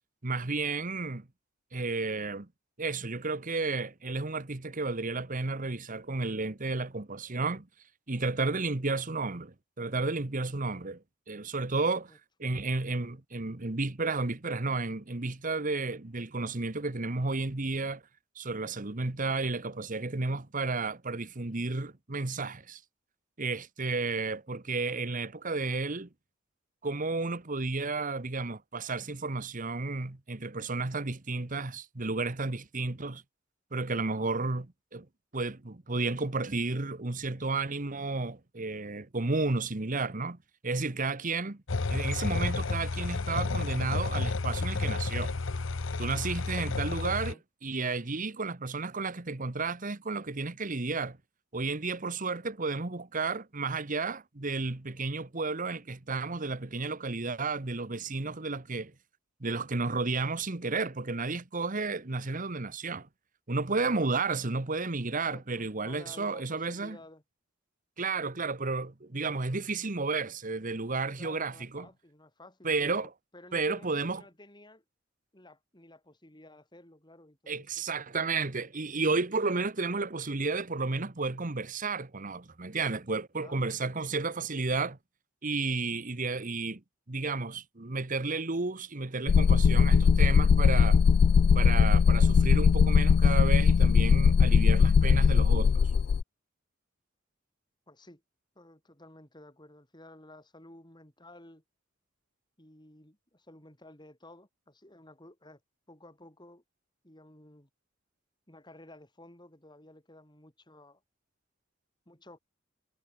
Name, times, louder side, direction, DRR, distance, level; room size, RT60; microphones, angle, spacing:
voice 1, 0.2-1.3 1.7-2.5 2.8-7.7 8.1-12.1 12.4-18.0 18.4-22.8 23.4-26.1 26.8-33.2 33.7-35.1 35.3-41.6 41.9-45.3 46.0-47.3 47.6-51.2 51.5-58.9 59.4-63.1 63.5-67.0 68.0-71.9 72.6-73.1 73.5-74.2 77.5-85.0 85.4-86.8 87.1-91.0 91.5-95.9, right 3 dB, 40° right, 1.3 m, -32 dB
sound 1, 41.7-47.3, left 3 dB, 70° left, 0.8 m, -31 dB
voice 2, 46.4-47.4 65.2-67.2 71.2-74.8 75.3-77.8 83.3-83.6 97.9-98.2 98.5-101.6 102.6-105.6 105.9-106.6 107.0-107.7 108.5-111.0 112.1-112.4, left 1 dB, 20° left, 6.8 m, -53 dB
sound 2, 89.3-96.2, left 6 dB, 50° left, 0.3 m, -20 dB
head